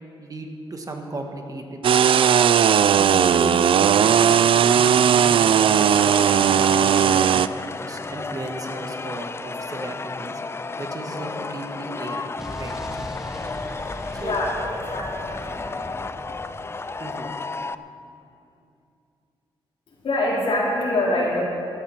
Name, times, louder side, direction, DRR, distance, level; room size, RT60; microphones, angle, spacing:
voice 1, 0.2-2.5 3.0-7.4 7.8-10.4 10.8-12.7 14.1-14.4 17.0-17.3, right 2 dB, 35° right, 3 dB, 1.6 m, -35 dB
sound 1, 1.8-7.5, right 8 dB, 65° right, 0.4 m, -17 dB
sound 2, 5.7-17.7, left 3 dB, 25° left, 0.4 m, -33 dB
Explosion, 12.4-17.2, equal, 5° right, 1.4 m, -39 dB
voice 2, 13.8-15.7 19.9-21.4, left 1 dB, 65° left, -6 dB, 3.5 m, -25 dB
16.0 x 11.0 x 5.8 m, 2.5 s
cardioid pair, 105°, 10 cm